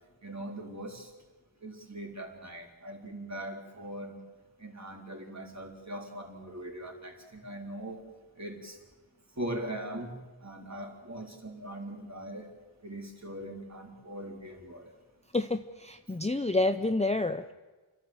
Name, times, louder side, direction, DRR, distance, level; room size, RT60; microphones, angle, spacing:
voice 1, 0.2-1.1 1.6-4.2 4.6-8.0 8.4-8.8 9.4-10.1 10.4-12.5 12.8-14.9, right 1 dB, 35° right, 1 dB, 4.0 m, -40 dB
voice 2, 15.3-17.5, left 2 dB, 15° left, 8 dB, 0.7 m, -29 dB
29.5 x 13.0 x 8.0 m, 1.3 s
wide cardioid pair, 75°, 49 cm